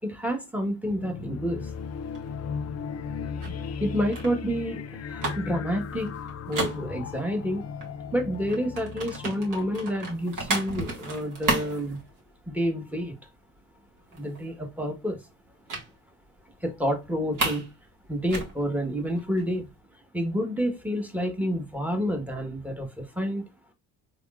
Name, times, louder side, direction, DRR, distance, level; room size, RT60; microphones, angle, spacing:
voice 1, 0.0-1.7 3.6-6.1 6.5-7.7 8.1-12.0 12.5-13.2 14.1-15.2 16.6-17.7 18.1-19.7 20.1-23.4, equal, 5° right, 1.2 m, -29 dB
sound 1, 0.8-11.0, left 6 dB, 40° left, 0.5 m, -37 dB
sound 2, 1.6-7.4 7.8-12.7 13.0-13.3 13.5-13.6 14.0-14.7 15.7-15.9 16.3-16.4 16.7-17.7 18.0-19.7, right 2 dB, 50° right, 1.9 m, -34 dB
3.8 x 3.5 x 2.4 m
supercardioid pair, 65°, 41 cm